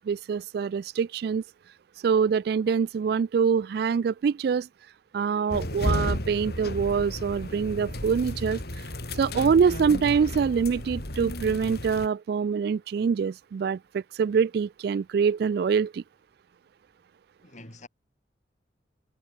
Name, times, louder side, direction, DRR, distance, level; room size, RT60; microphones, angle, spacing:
voice 1, 0.1-1.4 2.0-4.7 5.1-8.6 9.2-16.0, right 6 dB, 60° right, 0.3 m, -25 dB
sound 1, 5.5-12.1, left 1 dB, 60° left, 4.2 m, -33 dB
voice 2, 17.4-17.9, left 2 dB, 40° left, 7.6 m, -48 dB
head